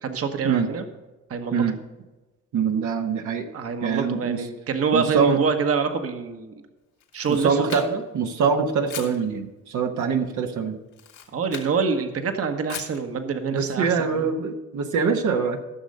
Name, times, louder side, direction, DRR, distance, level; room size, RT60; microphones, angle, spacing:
voice 1, 0.0-0.9 1.3-1.6 3.5-6.6 7.1-8.0 11.3-14.3, right 5 dB, 50° right, 6 dB, 1.2 m, -26 dB
voice 2, 2.5-3.5 3.8-4.4 4.9-5.4 7.3-7.8 8.1-10.8 13.5-15.7, right 6 dB, 75° right, 4 dB, 1.2 m, -24 dB
Camera, 7.0-8.2 8.9-9.2 10.9-11.7 12.7-13.0, left 9 dB, 80° left, 2.4 m, -38 dB
14.0 x 6.5 x 5.4 m, 1.1 s
cardioid pair, 90°, 30 cm